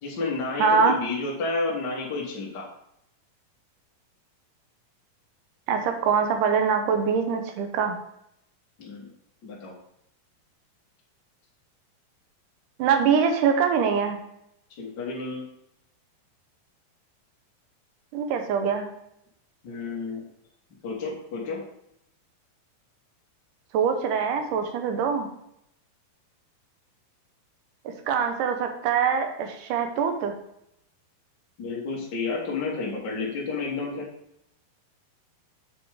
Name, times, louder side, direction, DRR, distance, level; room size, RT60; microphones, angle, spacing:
voice 1, 0.0-2.7 8.8-9.1 9.4-9.7 14.8-15.4 19.6-20.3 20.8-21.6 31.6-34.1, left 3 dB, 50° left, -4 dB, 1.3 m, -31 dB
voice 2, 0.6-1.0 5.7-8.0 12.8-14.2 18.1-18.9 23.7-25.3 27.9-30.3, right 6 dB, 70° right, 5 dB, 2.3 m, -23 dB
7.0 x 4.8 x 4.8 m, 0.77 s
omnidirectional pair, 4.1 m